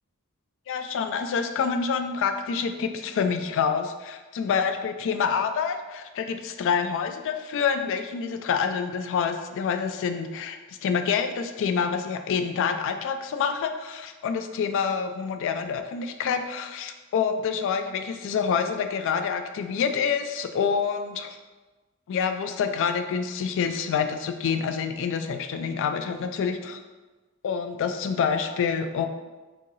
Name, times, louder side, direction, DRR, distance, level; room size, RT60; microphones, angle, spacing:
voice 1, 0.7-21.4 22.1-26.8 27.4-29.1, left 6 dB, 60° left, 7 dB, 0.3 m, -27 dB
2.9 x 2.7 x 3.8 m, 1.2 s
head